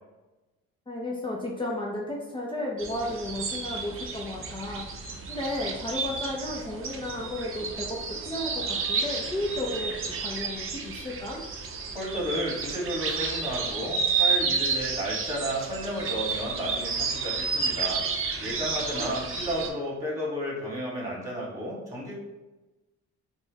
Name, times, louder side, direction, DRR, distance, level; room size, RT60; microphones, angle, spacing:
voice 1, 0.9-4.9 5.3-11.4 18.9-19.1, left 1 dB, 15° left, -3 dB, 0.6 m, -33 dB
sound 1, 2.8-19.7, right 5 dB, 45° right, 0.6 m, -31 dB
voice 2, 11.9-22.1, equal, 10° right, -4 dB, 1.4 m, -32 dB
4.2 x 2.2 x 2.9 m, 1.1 s
cardioid pair, 90°, 30 cm